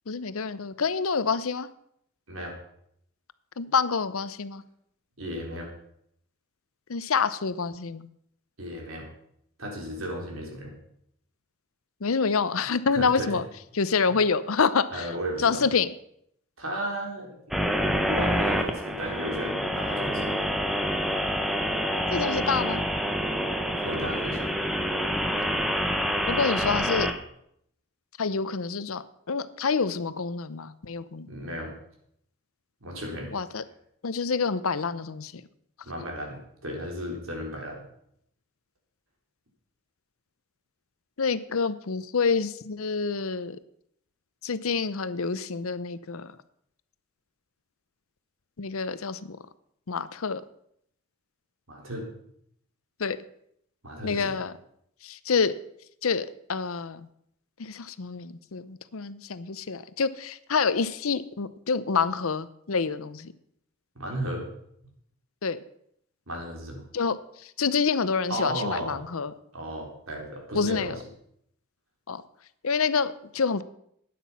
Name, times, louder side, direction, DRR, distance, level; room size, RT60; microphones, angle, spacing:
voice 1, 0.1-1.7 3.6-4.6 6.9-8.1 12.0-13.4 13.7-15.1 15.4-15.9 22.1-22.8 26.3-27.1 28.2-31.3 33.3-33.6 34.0-35.3 41.2-43.6 44.4-46.3 48.6-49.4 49.9-50.4 53.0-53.2 54.0-54.5 55.0-55.5 56.0-57.0 57.6-63.3 65.4-65.6 66.9-67.2 67.6-69.3 70.5-71.0 72.1-72.2 72.6-73.6, left 5 dB, 75° left, 15 dB, 0.7 m, -27 dB
voice 2, 5.2-5.7 8.6-9.0 9.6-10.7 12.9-13.4 14.1-14.2 14.9-15.7 16.6-17.4 18.1-20.3 23.8-24.5 31.3-31.8 32.8-33.3 35.8-37.8 51.7-52.1 53.8-54.3 63.9-64.5 66.3-66.8 68.3-69.0 69.5-71.0, equal, 70° right, 0 dB, 4.0 m, -34 dB
sound 1, 17.5-27.1, equal, ahead, 0.9 m, -27 dB
12.5 x 9.4 x 5.7 m, 0.72 s
head